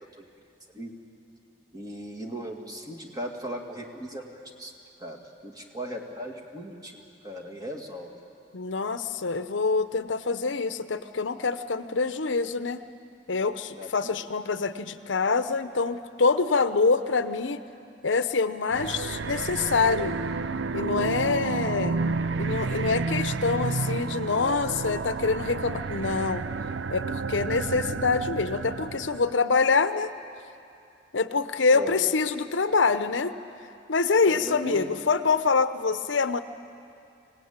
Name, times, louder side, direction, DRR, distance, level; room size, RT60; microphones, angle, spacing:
voice 1, 1.7-4.2 4.6-4.7 5.0-5.2 5.4-8.1 13.7-14.1 31.7-32.1 34.3-34.9, right 1 dB, 20° right, 1 dB, 2.3 m, -37 dB
voice 2, 8.5-12.8 13.3-17.6 18.0-20.2 20.7-22.0 22.4-26.4 26.9-30.1 31.1-33.3 33.9-36.4, left 4 dB, 85° left, 11 dB, 0.8 m, -25 dB
sound 1, 18.7-29.3, right 4 dB, 75° right, 0.5 m, -31 dB
25.5 x 18.0 x 8.9 m, 2.6 s
head